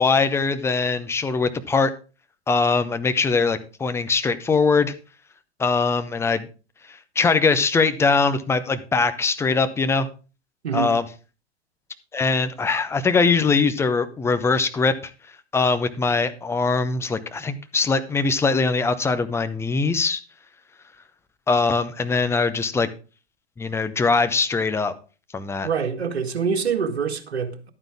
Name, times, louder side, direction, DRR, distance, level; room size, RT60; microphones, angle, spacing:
voice 1, 0.0-1.9 2.5-4.9 5.6-6.5 7.2-10.1 10.7-11.0 12.1-15.1 15.5-20.2 21.5-22.9 23.6-24.9 25.3-25.7, left 4 dB, 10° left, 0.8 m, -21 dB
voice 2, 10.6-11.0 25.6-27.7, right 6 dB, 70° right, 1.7 m, -25 dB
12.0 x 8.9 x 3.5 m
figure-of-eight pair, 100°, 33 cm